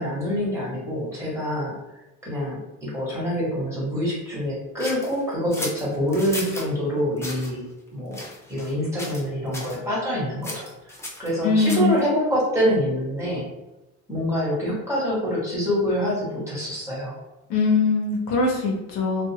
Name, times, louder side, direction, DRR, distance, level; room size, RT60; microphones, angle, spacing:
voice 1, 0.0-1.8 2.2-7.6 7.9-8.2 8.5-10.7 11.2-13.4 14.1-17.2, equal, 10° right, -7 dB, 1.2 m, -26 dB
sound 1, 4.8-6.7 7.2-7.5 8.1-8.7 9.0-9.3 9.5-9.8 10.4-12.0, left 1 dB, 10° left, 0.5 m, -35 dB
voice 2, 11.4-12.0 17.5-19.3, left 3 dB, 75° left, -2 dB, 0.9 m, -22 dB
2.5 x 2.5 x 2.8 m, 1.0 s
cardioid pair, 135°, 32 cm